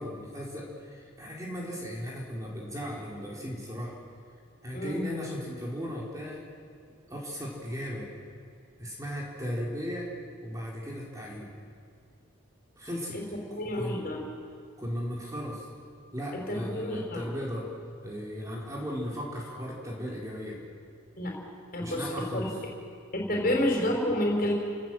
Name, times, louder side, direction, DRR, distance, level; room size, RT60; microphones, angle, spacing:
voice 1, 0.0-4.0 4.6-6.4 7.1-8.1 8.8-10.1 10.4-11.5 12.8-13.2 13.8-14.0 14.8-15.7 16.1-17.7 18.0-20.6 21.8-22.5, equal, 15° right, -3 dB, 4.2 m, -36 dB
voice 2, 4.7-5.1 13.1-13.2 13.6-14.2 16.5-17.2 21.2-21.4 21.7-22.1 23.1-24.5, left 1 dB, 45° left, 0 dB, 5.3 m, -29 dB
29.5 x 18.0 x 7.8 m, 2.3 s
head